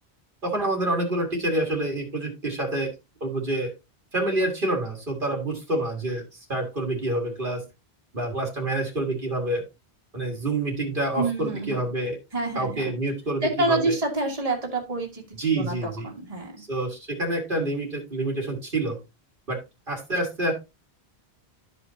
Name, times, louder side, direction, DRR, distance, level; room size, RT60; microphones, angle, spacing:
voice 1, 0.4-2.9 3.2-3.7 4.1-7.6 8.1-9.6 10.1-12.2 12.6-13.9 15.4-16.1 16.6-19.0 19.5-19.6 19.9-20.5, right 2 dB, 55° right, 2 dB, 1.9 m, -27 dB
voice 2, 11.2-11.8 12.3-12.9 13.4-15.2 15.5-16.6, right 2 dB, 35° right, 0 dB, 1.9 m, -27 dB
12.5 x 5.3 x 2.7 m, 0.24 s
omnidirectional pair, 1.1 m